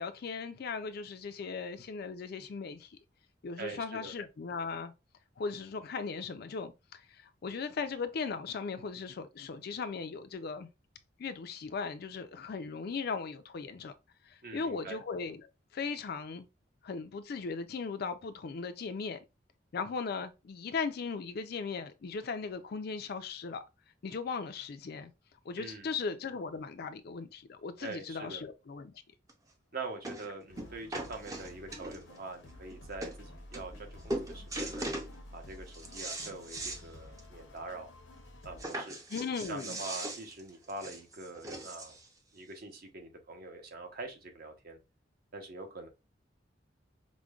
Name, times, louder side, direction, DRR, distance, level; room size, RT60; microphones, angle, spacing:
voice 1, 0.0-3.0 3.4-4.9 5.4-10.7 11.2-13.9 14.2-16.5 16.8-19.2 19.7-23.6 24.0-25.1 25.5-28.9 39.1-39.8, left 5 dB, 55° left, 0.4 m, -38 dB
voice 2, 3.6-4.1 14.4-15.0 25.6-25.9 27.8-28.4 29.7-34.9 35.3-37.9 38.4-39.0 39.5-42.0 42.3-44.8 45.3-45.9, right 3 dB, 50° right, 0.8 m, -44 dB
sound 1, 29.3-29.4 30.0-30.3 30.6-32.2 32.7-32.8 33.0-33.2 33.5-33.8 34.1-35.1 35.5-36.8 37.2-37.3 37.6-37.7 38.6-42.1 42.9-43.0, right 1 dB, 20° right, 0.5 m, -39 dB
sound 2, 30.5-38.7, left 1 dB, 75° left, 0.8 m, -51 dB
5.0 x 2.1 x 2.3 m
head